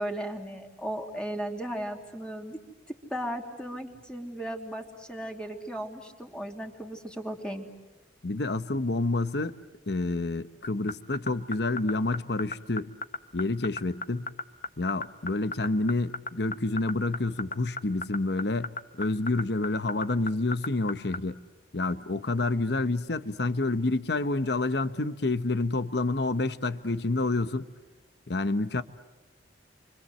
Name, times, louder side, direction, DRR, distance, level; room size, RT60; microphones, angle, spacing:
voice 1, 0.0-2.6 2.9-7.7, right 1 dB, 5° left, 3.0 m, -36 dB
voice 2, 8.2-9.6 9.9-12.9 13.3-14.3 14.8-21.4 21.7-27.7 28.3-28.8, left 2 dB, 60° left, 1.0 m, -28 dB
sound 1, 10.6-21.2, left 4 dB, 40° left, 1.1 m, -33 dB
29.5 x 25.5 x 7.9 m
head